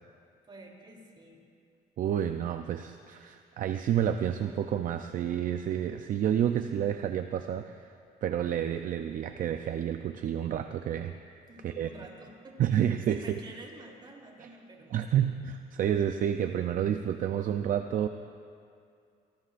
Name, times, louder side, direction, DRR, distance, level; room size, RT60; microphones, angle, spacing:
voice 1, 0.4-1.4 11.5-15.2, right 1 dB, 30° right, 0 dB, 3.2 m, -49 dB
voice 2, 2.0-7.9 8.2-11.1 11.6-11.9 12.6-13.4 14.4-14.5 14.9-18.1, right 9 dB, 55° right, 7 dB, 0.6 m, -29 dB
25.0 x 19.0 x 2.6 m, 2.4 s
cardioid pair, 110°, 17 cm